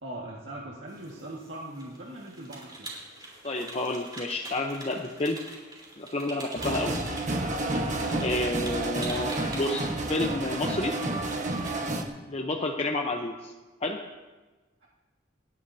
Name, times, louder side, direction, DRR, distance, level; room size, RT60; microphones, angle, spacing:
voice 1, 0.0-2.9 7.6-8.2, right 1 dB, 75° right, -4 dB, 1.8 m, -40 dB
sound 1, 0.9-12.0, right 2 dB, 25° right, 3.8 m, -45 dB
voice 2, 3.4-5.4 6.0-6.9 8.1-10.9 12.3-13.5 13.8-14.0, left 2 dB, 35° left, 2 dB, 0.8 m, -30 dB
sound 2, 6.6-12.0, right 2 dB, 40° right, 1.3 m, -30 dB
28.0 x 10.5 x 2.8 m, 1.2 s
head